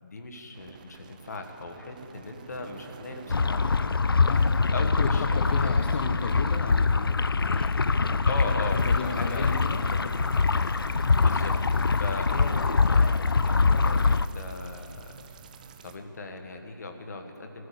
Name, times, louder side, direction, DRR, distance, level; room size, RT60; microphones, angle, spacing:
voice 1, 0.0-3.6 4.7-5.3 5.5-5.7 8.3-10.1 11.1-15.0 15.8-17.7, left 3 dB, 50° left, 4 dB, 1.5 m, -38 dB
sound 1, 0.5-16.0, right 6 dB, 20° right, 0.5 m, -50 dB
sound 2, 3.3-14.3, left 4 dB, 90° left, 0.4 m, -24 dB
voice 2, 5.0-7.2 7.5-7.7 8.0-8.2 8.8-9.8, left 5 dB, 30° left, 4 dB, 0.6 m, -34 dB
14.5 x 10.0 x 6.6 m, 3.0 s
figure-of-eight pair, 155°, 12 cm